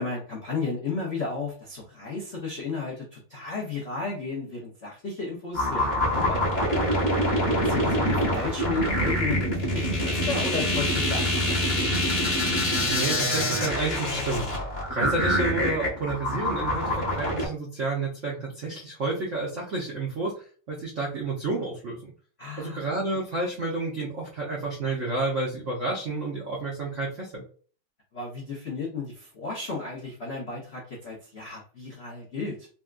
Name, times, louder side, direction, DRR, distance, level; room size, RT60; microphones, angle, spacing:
voice 1, 0.0-7.1 7.6-12.0 22.4-23.2 28.1-32.7, left 4 dB, 85° left, -3 dB, 0.5 m, -34 dB
sound 1, 5.5-17.5, equal, 40° left, 0.6 m, -25 dB
voice 2, 12.9-14.6 14.9-22.1 22.6-27.4, right 2 dB, 70° right, -4 dB, 0.7 m, -30 dB
4.1 x 2.3 x 2.4 m, 0.41 s
omnidirectional pair, 2.4 m